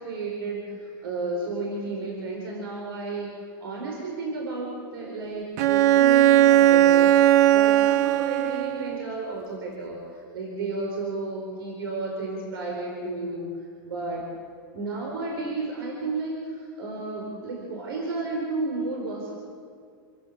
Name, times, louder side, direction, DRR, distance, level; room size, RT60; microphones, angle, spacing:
voice 1, 0.0-3.3 3.6-7.1 7.5-13.5 13.8-14.2 14.7-19.3, right 3 dB, 85° right, -1 dB, 4.9 m, -32 dB
Bowed string instrument, 5.6-9.1, right 13 dB, 50° right, 0.6 m, -18 dB
27.5 x 15.0 x 6.7 m, 2.2 s
supercardioid pair, 155°, 12 cm